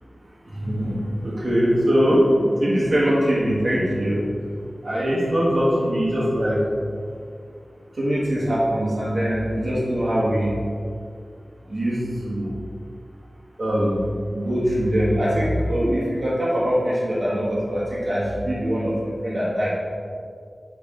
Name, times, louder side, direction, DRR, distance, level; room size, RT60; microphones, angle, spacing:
voice 1, 0.5-4.2 4.8-6.6 8.0-10.5 11.7-12.5 13.6-14.0 14.3-19.7, equal, 55° right, -7 dB, 1.5 m, -22 dB
8.5 x 4.2 x 3.8 m, 2.3 s
wide cardioid pair, 70°, 0 cm